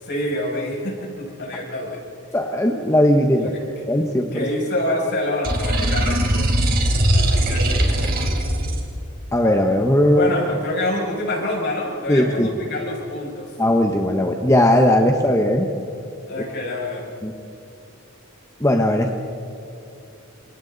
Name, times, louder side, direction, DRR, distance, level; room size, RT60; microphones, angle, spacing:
voice 1, 0.0-2.0 3.4-3.6 4.3-6.5 7.1-7.9 10.1-13.5 16.3-17.1, left 1 dB, 50° left, -2 dB, 7.2 m, -26 dB
voice 2, 2.3-3.5 3.9-4.5 9.3-10.3 12.1-12.5 13.6-15.7 17.2-17.3 18.6-19.1, left 1 dB, 15° left, 2 dB, 1.2 m, -18 dB
sound 1, 5.4-8.8, right 1 dB, 45° right, 4.0 m, -20 dB
29.5 x 27.5 x 4.1 m, 2.7 s
head